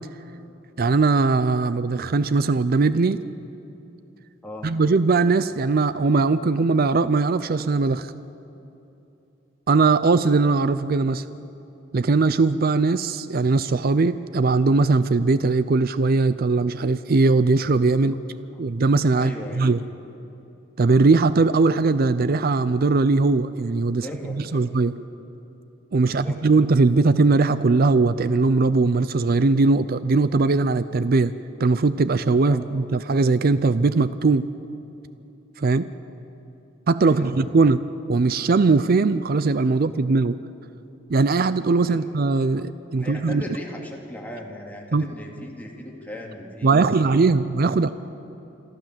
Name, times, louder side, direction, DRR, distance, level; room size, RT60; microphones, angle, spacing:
voice 1, 0.8-3.2 4.6-8.1 9.7-11.2 11.9-18.2 18.6-19.8 20.8-24.9 25.9-31.3 31.6-34.5 35.6-35.9 36.9-37.8 38.1-40.4 41.1-43.4 44.9-45.1 46.6-47.9, right 3 dB, 50° right, 14 dB, 0.5 m, -20 dB
voice 2, 19.1-19.7 23.9-24.6 26.0-26.4 32.5-32.6 37.0-37.6 41.9-42.0 42.5-42.6 43.0-47.4, left 1 dB, 10° left, -1 dB, 2.7 m, -38 dB
27.0 x 13.0 x 7.6 m, 2.9 s
head